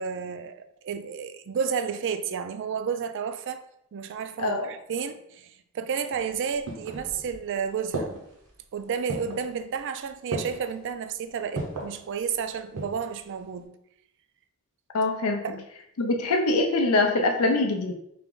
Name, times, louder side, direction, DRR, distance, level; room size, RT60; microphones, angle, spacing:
voice 1, 0.0-3.6 3.9-8.2 8.7-13.8 15.4-15.6, right 6 dB, 55° right, 0.3 m, -31 dB
voice 2, 4.4-4.7 14.9-15.4 16.0-17.9, left 2 dB, 70° left, 0.5 m, -23 dB
sound 1, 6.1-7.5 7.9-8.5 9.1-9.5 10.3-10.7 11.6-12.0 12.5-13.1 13.4-13.5, right 2 dB, 90° right, 1.0 m, -34 dB
3.4 x 2.9 x 3.7 m
head